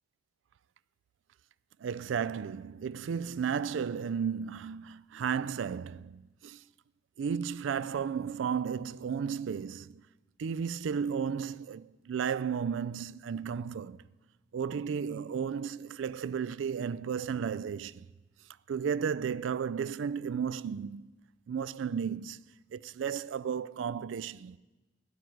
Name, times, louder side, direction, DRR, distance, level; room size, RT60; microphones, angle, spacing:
voice 1, 1.8-6.6 7.2-10.0 10.4-14.0 14.5-18.1 18.7-21.1 21.5-22.4 22.7-24.6, right 7 dB, 70° right, 0.3 m, -34 dB
12.0 x 6.2 x 9.4 m
head